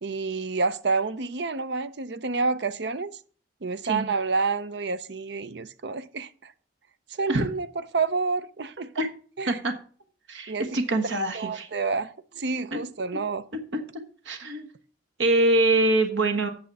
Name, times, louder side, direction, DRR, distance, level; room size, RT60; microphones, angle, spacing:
voice 1, 0.0-3.1 3.6-6.5 7.1-8.9 9.4-9.6 10.5-10.8 11.1-13.5, right 4 dB, 60° right, 0.6 m, -29 dB
voice 2, 10.3-11.7 12.7-12.8 13.7-13.8 14.2-14.7 15.2-16.5, right 2 dB, 80° right, 1.3 m, -24 dB
8.8 x 6.7 x 5.4 m
head